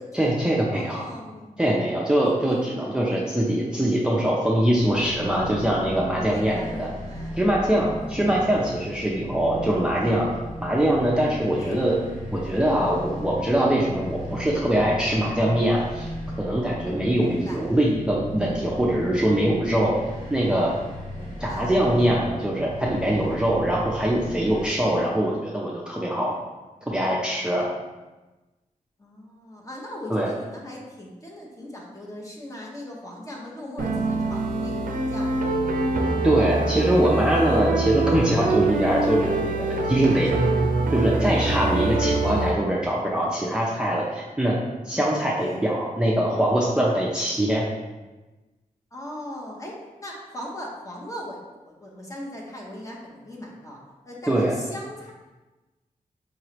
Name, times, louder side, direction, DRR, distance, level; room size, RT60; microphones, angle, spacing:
voice 1, 0.1-1.0 1.6-6.9 7.3-10.3 10.6-11.9 12.3-16.1 16.4-19.9 20.3-20.7 21.4-26.3 26.9-27.7 30.1-30.3 36.2-40.3 40.9-44.6 44.8-47.6 54.3-54.5, right 1 dB, 5° right, -4 dB, 0.5 m, -23 dB
voice 2, 0.7-1.7 2.5-2.6 6.1-7.4 8.0-8.6 11.6-11.8 17.2-17.6 21.2-21.7 25.0-25.2 29.0-35.8 40.1-40.5 45.4-45.6 48.9-53.8 54.0-55.1, left 1 dB, 20° left, -2 dB, 0.8 m, -39 dB
sound 1, 4.8-24.7, equal, 65° left, 1.4 m, -36 dB
sound 2, 33.8-42.5, right 2 dB, 75° right, 0.5 m, -24 dB
4.8 x 3.1 x 2.9 m, 1.2 s
wide cardioid pair, 130°, 14 cm